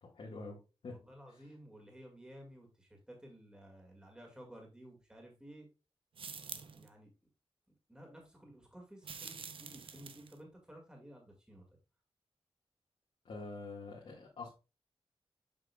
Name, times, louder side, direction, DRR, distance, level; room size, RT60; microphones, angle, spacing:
voice 1, 0.0-1.0 1.3-1.4 13.3-14.5, left 3 dB, 70° left, -3 dB, 1.7 m, -46 dB
voice 2, 0.9-5.7 6.8-7.1 7.9-11.6, equal, 10° right, 1 dB, 1.9 m, -54 dB
sound 1, 6.1-6.9 9.0-10.4, right 6 dB, 65° right, 0.7 m, -47 dB
7.6 x 6.0 x 2.3 m, 0.30 s
wide cardioid pair, 140°, 10 cm